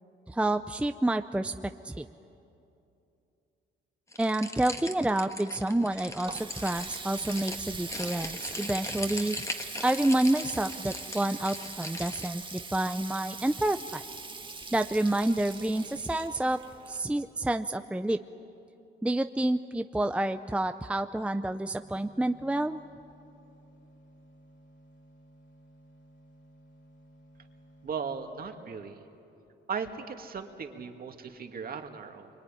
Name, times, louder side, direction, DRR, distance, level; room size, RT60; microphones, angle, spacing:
voice 1, 0.3-2.1 4.2-9.4 9.8-14.0 14.7-16.6 16.9-18.2 19.0-22.8, right 1 dB, 5° right, 9 dB, 0.6 m, -29 dB
sound 1, 4.1-12.3, left 1 dB, 15° left, 1.7 m, -40 dB
Water tap faucet, 5.8-17.5, right 4 dB, 25° right, 1.5 m, -42 dB
sound 2, 21.7-28.3, right 1 dB, 75° left, 8.0 m, -57 dB
voice 2, 27.8-29.0 29.7-32.3, right 6 dB, 50° right, 5 dB, 2.3 m, -37 dB
24.0 x 23.5 x 10.0 m, 2.8 s
cardioid pair, 90°, 20 cm